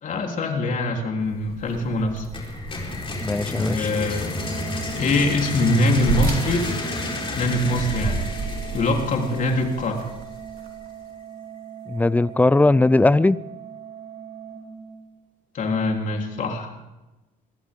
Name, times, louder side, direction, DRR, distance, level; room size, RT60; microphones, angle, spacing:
voice 1, 0.0-2.3 3.5-4.3 5.0-6.7 7.4-8.3 8.7-10.0 15.5-16.7, left 2 dB, 50° left, 2 dB, 3.6 m, -23 dB
sound 1, 1.2-11.0, right 4 dB, 65° right, 3.1 m, -33 dB
sound 2, 2.3-10.1, left 2 dB, 30° left, 4.4 m, -31 dB
voice 2, 3.2-3.9 11.9-13.4, left 2 dB, 10° left, 19 dB, 0.5 m, -19 dB
Organ, 4.3-15.3, right 9 dB, 45° right, 5.5 m, -40 dB
24.0 x 16.0 x 3.7 m, 1.0 s
cardioid pair, 105°, 17 cm